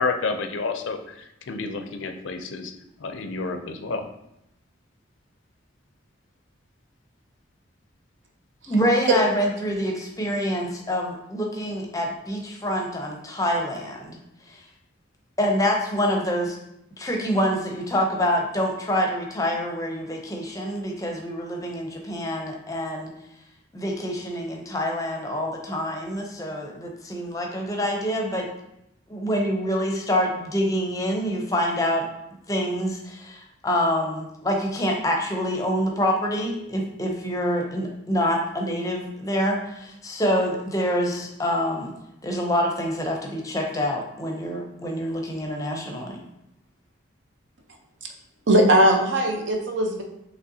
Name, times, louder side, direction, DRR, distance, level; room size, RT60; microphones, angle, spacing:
voice 1, 0.0-2.7 3.0-4.1, left 4 dB, 75° left, 7 dB, 0.5 m, -29 dB
voice 2, 8.7-14.2 14.5-14.6 15.4-16.6 17.0-23.1 23.7-28.5 29.1-32.0 32.5-41.9 42.2-46.2, equal, 15° left, 1 dB, 0.5 m, -26 dB
voice 3, 48.5-50.0, right 1 dB, 70° right, 2 dB, 0.7 m, -19 dB
5.4 x 3.1 x 2.7 m, 0.83 s
head